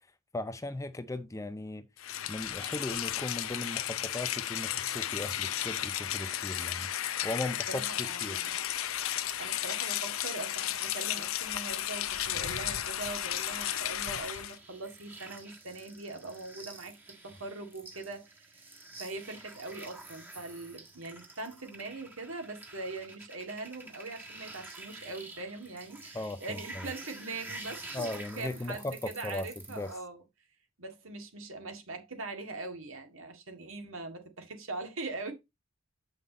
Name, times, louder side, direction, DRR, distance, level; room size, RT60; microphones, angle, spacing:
voice 1, 0.3-1.9 2.3-6.9 7.2-8.4 26.1-26.9 27.9-29.9, left 2 dB, 15° left, 0.5 m, -37 dB
Rain, 2.0-14.6, left 11 dB, 75° left, 0.7 m, -34 dB
voice 2, 7.7-8.6 9.4-17.0 17.2-18.7 19.0-30.2 30.8-35.3, right 3 dB, 70° right, 2.0 m, -42 dB
sound 1, 13.4-30.0, right 2 dB, 10° right, 1.4 m, -49 dB
8.0 x 5.6 x 4.0 m
head